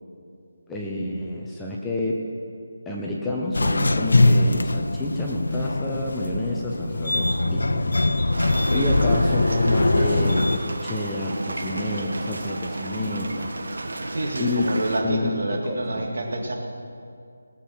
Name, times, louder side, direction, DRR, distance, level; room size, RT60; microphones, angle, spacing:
voice 1, 0.7-2.2 2.9-7.9 8.7-13.5 14.4-14.7 15.0-16.1, left 1 dB, 5° left, -3 dB, 0.7 m, -29 dB
sound 1, 3.5-10.6, left 2 dB, 80° left, 0.8 m, -21 dB
sound 2, 8.3-15.0, right 2 dB, 75° right, 1.7 m, -33 dB
voice 2, 8.6-8.9 14.1-16.5, right 1 dB, 60° right, 1 dB, 2.3 m, -28 dB
19.5 x 7.5 x 6.1 m, 2.4 s
figure-of-eight pair, 175°, 0 cm